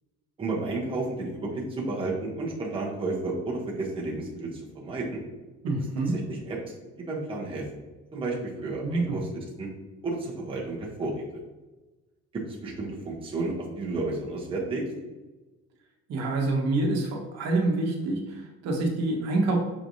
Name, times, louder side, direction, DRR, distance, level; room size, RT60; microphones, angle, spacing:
voice 1, 0.4-5.2 6.3-6.6 7.1-7.7 8.1-9.3 9.6-9.7 10.0-11.2 12.3-14.8, right 2 dB, 20° right, -3 dB, 0.8 m, -32 dB
voice 2, 5.6-6.2 8.8-9.2 16.1-19.6, right 2 dB, 60° right, 1 dB, 1.0 m, -26 dB
5.8 x 3.2 x 2.6 m, 1.2 s
cardioid pair, 175°, 29 cm